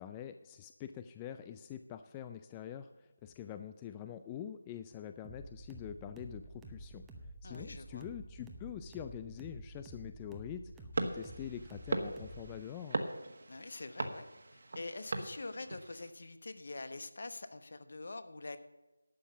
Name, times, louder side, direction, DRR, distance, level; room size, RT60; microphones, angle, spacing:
voice 1, 0.0-7.0 7.4-13.0, left 9 dB, 15° left, 9 dB, 0.3 m, -45 dB
sound 1, 5.2-12.6, right 1 dB, 5° right, 0.8 m, -50 dB
voice 2, 7.4-8.1 13.5-14.3 14.5-18.6, left 3 dB, 55° left, 10 dB, 1.0 m, -45 dB
sound 2, 10.9-16.1, right 2 dB, 55° right, 1.5 m, -39 dB
11.5 x 7.2 x 7.0 m, 1.1 s
figure-of-eight pair, 165°, 0 cm